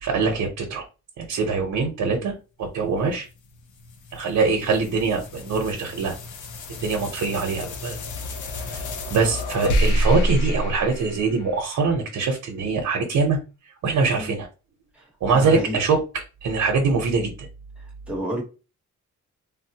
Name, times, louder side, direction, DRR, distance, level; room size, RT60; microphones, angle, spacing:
voice 1, 0.0-0.8 1.2-3.3 4.1-6.1 6.8-8.0 8.7-8.8 9.1-13.4 13.8-14.5 15.2-16.0 16.4-17.5, right 4 dB, 80° right, 0.7 m, -23 dB
sound 1, 3.3-11.9, equal, 75° left, 0.6 m, -28 dB
voice 2, 14.9-15.8 17.8-18.4, right 1 dB, 5° right, 0.9 m, -31 dB
3.6 x 2.0 x 2.7 m
wide cardioid pair, 175°, 30 cm